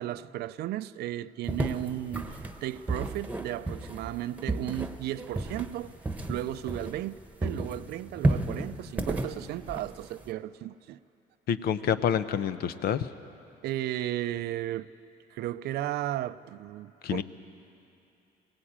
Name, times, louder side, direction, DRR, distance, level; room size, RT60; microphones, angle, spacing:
voice 1, 0.0-6.0 6.3-11.0 13.6-14.9 15.3-17.2, right 13 dB, 75° right, 0.5 m, -35 dB
sound 1, 1.5-7.2 7.4-10.3, right 2 dB, 10° right, 1.3 m, -32 dB
voice 2, 11.5-13.1 17.0-17.2, left 8 dB, 65° left, 0.8 m, -27 dB
21.0 x 17.0 x 8.7 m
cardioid pair, 110°, 17 cm